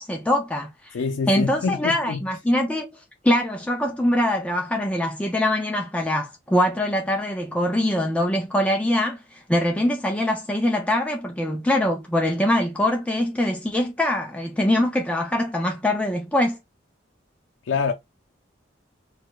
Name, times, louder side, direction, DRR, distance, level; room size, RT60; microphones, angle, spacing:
voice 1, 0.0-1.0 1.3-16.6, left 1 dB, 5° left, 0.3 m, -23 dB
voice 2, 0.9-2.2 17.7-17.9, left 5 dB, 85° left, 0.4 m, -25 dB
4.7 x 2.2 x 2.2 m
head